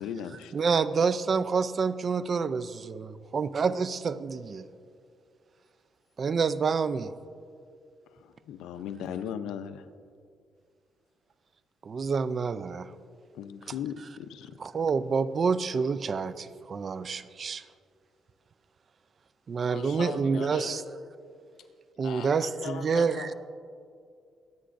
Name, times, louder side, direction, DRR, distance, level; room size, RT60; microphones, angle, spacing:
voice 1, 0.0-0.5 8.1-9.9 13.3-14.6, left 8 dB, 90° left, 10 dB, 0.6 m, -37 dB
voice 2, 0.5-4.7 6.2-7.1 11.8-12.9 14.6-17.6 19.5-20.8 22.0-23.3, right 5 dB, 45° right, 14 dB, 0.5 m, -28 dB
voice 3, 19.7-20.8 22.0-23.3, left 6 dB, 75° left, 6 dB, 1.0 m, -39 dB
23.0 x 9.5 x 2.6 m, 2.3 s
cardioid pair, 90°, 0 cm